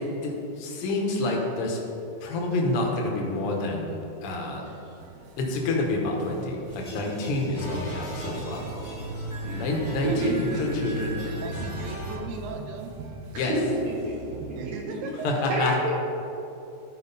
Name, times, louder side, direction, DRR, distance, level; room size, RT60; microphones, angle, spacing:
voice 1, 0.0-1.8 2.2-4.7 5.4-8.6 9.6-11.5 13.3-13.5 15.2-15.8, left 2 dB, 65° left, 0 dB, 1.6 m, -28 dB
sound 1, 5.0-14.8, right 4 dB, 90° right, 1.5 m, -43 dB
sound 2, 6.7-12.2, right 1 dB, 90° left, 0.4 m, -36 dB
voice 2, 9.4-10.5 13.3-15.0 15.5-15.9, right 1 dB, 55° right, -5 dB, 2.0 m, -30 dB
voice 3, 10.0-10.7 11.2-13.0 14.5-15.5, right 4 dB, 75° right, 3 dB, 1.9 m, -38 dB
12.5 x 4.7 x 4.1 m, 2.8 s
omnidirectional pair, 3.8 m